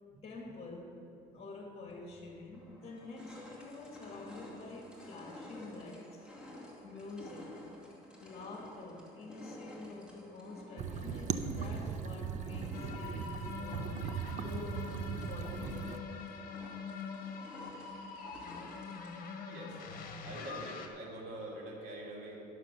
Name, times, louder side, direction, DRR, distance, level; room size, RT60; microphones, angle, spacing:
voice 1, 0.2-0.9 1.3-6.3 6.8-7.6 8.2-16.2, left 2 dB, 35° left, 1 dB, 1.9 m, -47 dB
sound 1, 1.9-2.0 2.5-19.3, left 1 dB, 5° right, 2.4 m, -52 dB
sound 2, 10.8-16.0, right 7 dB, 45° right, 0.5 m, -38 dB
sound 3, 12.7-20.9, left 5 dB, 55° left, 1.2 m, -44 dB
voice 2, 19.4-19.8 20.2-22.4, right 1 dB, 75° right, -2 dB, 2.3 m, -44 dB
11.5 x 6.6 x 6.0 m, 2.7 s
cardioid pair, 110°, 17 cm